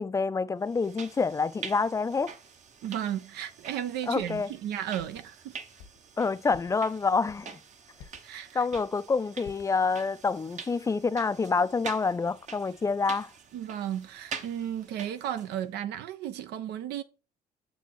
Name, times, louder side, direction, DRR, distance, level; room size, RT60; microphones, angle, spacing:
voice 1, 0.0-2.3 4.1-4.5 6.2-7.5 8.5-13.3, left 4 dB, 20° left, 0.4 m, -27 dB
sound 1, 0.7-15.6, right 6 dB, 45° right, 0.9 m, -46 dB
voice 2, 2.8-5.6 8.2-8.6 13.5-17.0, right 10 dB, 80° right, 0.8 m, -34 dB
sound 2, 4.2-4.4 5.0-5.2 5.8-6.0 6.5-6.8 7.2-7.5 8.0-8.3 8.7-9.0 9.4-9.7, left 7 dB, 85° left, 1.5 m, -50 dB
7.0 x 4.2 x 4.5 m
cardioid pair, 110°, 17 cm